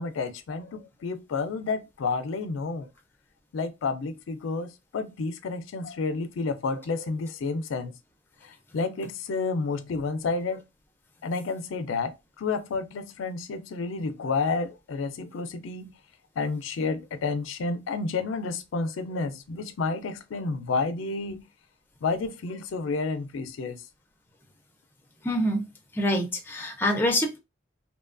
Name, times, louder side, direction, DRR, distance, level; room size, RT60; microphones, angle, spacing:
voice 1, 0.0-2.9 3.5-7.9 8.4-10.6 11.2-15.9 16.4-21.5 22.0-23.8, left 4 dB, 75° left, 0.4 m, -30 dB
voice 2, 25.2-25.7 25.9-27.4, equal, 10° left, 0.4 m, -25 dB
2.8 x 2.2 x 2.4 m
head